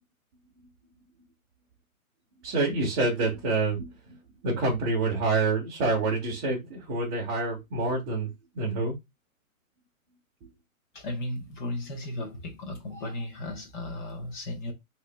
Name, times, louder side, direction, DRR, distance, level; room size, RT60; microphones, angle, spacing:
voice 1, 2.4-4.2 4.4-8.9 10.4-10.5, right 3 dB, 20° right, 0.9 m, -27 dB
voice 2, 10.9-14.7, left 1 dB, 35° left, 1.0 m, -35 dB
3.1 x 2.9 x 3.2 m
hypercardioid pair, 160°, 43 cm